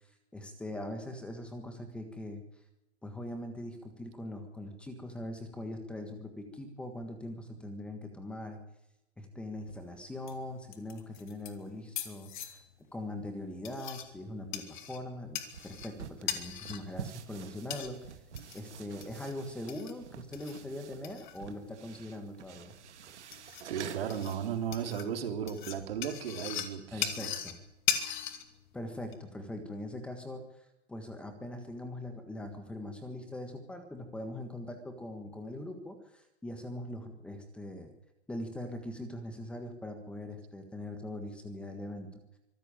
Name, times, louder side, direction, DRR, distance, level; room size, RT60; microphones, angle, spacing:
voice 1, 0.3-2.4 3.0-8.6 9.2-12.6 12.9-18.1 18.5-22.7 26.9-27.6 28.7-30.4 30.9-37.9 38.3-42.2, left 1 dB, 5° left, 6 dB, 1.6 m, -41 dB
sound 1, 9.5-29.1, left 10 dB, 45° left, 2.5 m, -41 dB
sound 2, 15.4-24.7, right 8 dB, 80° right, 2.1 m, -48 dB
voice 2, 23.6-27.3, right 8 dB, 55° right, 6 dB, 3.9 m, -35 dB
25.0 x 14.0 x 9.0 m, 0.89 s
hypercardioid pair, 175°, 34 cm